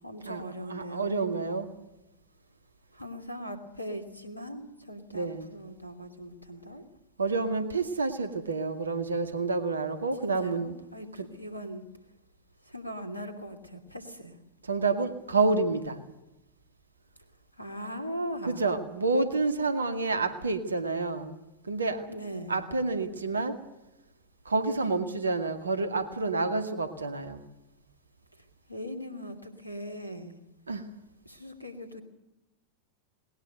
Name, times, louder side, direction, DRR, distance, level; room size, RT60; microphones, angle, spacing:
voice 1, 0.0-1.1 2.9-6.8 10.2-11.8 12.6-14.4 17.6-18.7 22.1-22.6 28.7-30.3 31.2-32.0, equal, 85° left, 6 dB, 2.8 m, -40 dB
voice 2, 0.7-1.7 5.1-5.5 7.2-10.7 11.2-11.3 14.6-16.0 18.5-22.0 22.5-23.6 24.5-27.4 30.7-30.8, right 3 dB, 75° right, 9 dB, 2.1 m, -29 dB
20.0 x 20.0 x 8.0 m, 0.94 s
figure-of-eight pair, 90°, 0 cm